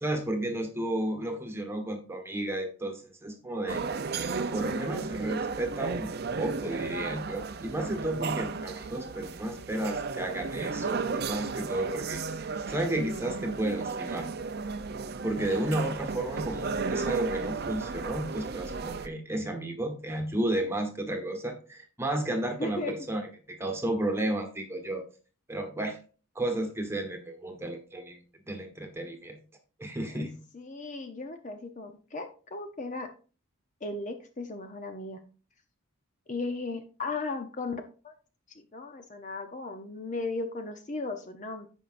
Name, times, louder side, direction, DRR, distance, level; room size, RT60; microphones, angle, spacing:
voice 1, 0.0-3.8 4.4-6.1 6.4-12.2 12.7-14.3 15.2-25.0 25.5-26.0 26.3-28.2 28.5-29.4 29.8-30.3, right 1 dB, 10° right, 4 dB, 1.3 m, -32 dB
sound 1, 3.7-19.1, right 4 dB, 45° right, 0.5 m, -34 dB
voice 2, 22.6-22.9 30.1-30.3 30.5-33.1 33.8-35.2 36.3-38.1 38.6-41.7, left 3 dB, 35° left, 6 dB, 0.7 m, -36 dB
15.5 x 5.4 x 2.5 m, 0.37 s
head